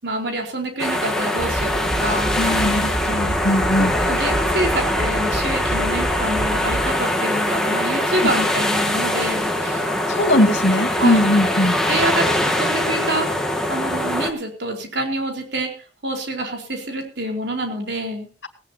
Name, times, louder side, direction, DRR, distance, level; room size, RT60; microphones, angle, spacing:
voice 1, 0.0-2.4 3.8-9.9 11.0-11.2 11.9-13.3 13.7-15.7 16.0-18.3, right 1 dB, 70° right, 2 dB, 4.5 m, -27 dB
sound 1, 0.8-14.3, left 1 dB, 5° left, 2.2 m, -22 dB
sound 2, 1.4-7.2, right 1 dB, 50° right, 1.6 m, -29 dB
voice 2, 2.4-3.9 8.2-8.3 10.1-11.7, left 1 dB, 90° left, 7 dB, 2.2 m, -19 dB
18.5 x 18.0 x 2.9 m, 0.34 s
head